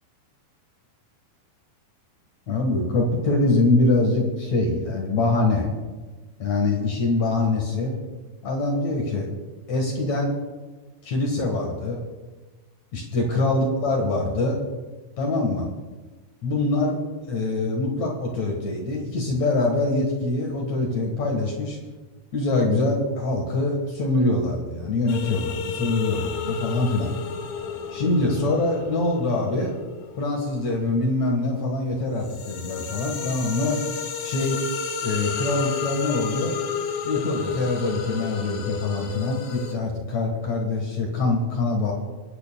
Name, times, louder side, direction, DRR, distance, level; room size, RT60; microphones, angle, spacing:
voice 1, 2.5-5.7 6.4-8.0 8.4-9.3 9.7-10.3 11.0-12.0 12.9-14.6 15.2-15.7 16.4-16.9 17.3-21.8 22.3-27.1 27.9-29.7 30.2-33.8 34.2-34.6 35.0-36.6 37.0-41.9, left 2 dB, 55° left, 0 dB, 2.3 m, -24 dB
sound 1, 25.1-31.5 31.9-39.7, left 6 dB, 75° left, 1.6 m, -32 dB
29.0 x 9.8 x 2.3 m, 1.3 s
omnidirectional pair, 4.7 m